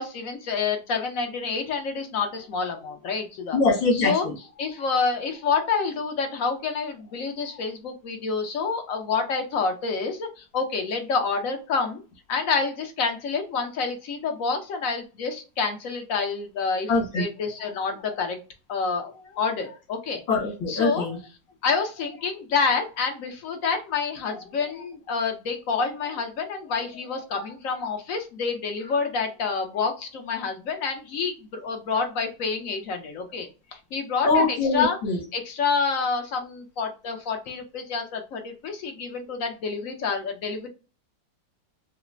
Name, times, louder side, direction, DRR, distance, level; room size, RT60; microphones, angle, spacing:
voice 1, 0.0-3.6 3.9-12.0 12.3-18.4 18.7-20.2 20.7-21.2 21.6-35.0 35.3-40.7, left 5 dB, 55° left, 4 dB, 1.0 m, -28 dB
voice 2, 3.5-4.3 16.9-17.2 20.3-21.2 34.2-35.2, left 3 dB, 80° left, 0 dB, 2.2 m, -23 dB
5.0 x 2.1 x 2.5 m, 0.32 s
omnidirectional pair, 2.0 m